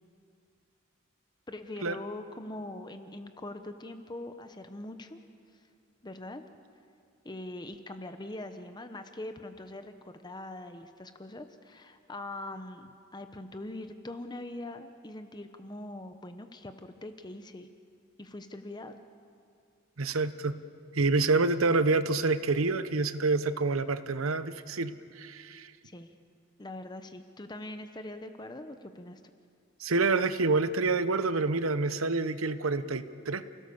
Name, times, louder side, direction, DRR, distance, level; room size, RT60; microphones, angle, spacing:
voice 1, 1.5-5.2 5.5-5.6 6.0-6.4 7.2-17.7 18.2-19.0 25.8-26.1 26.6-29.2, left 1 dB, 20° left, 8 dB, 0.8 m, -42 dB
voice 2, 20.0-20.6 20.9-25.7 29.8-33.4, right 3 dB, 85° right, 13 dB, 0.9 m, -27 dB
29.5 x 16.5 x 7.1 m, 2.3 s
head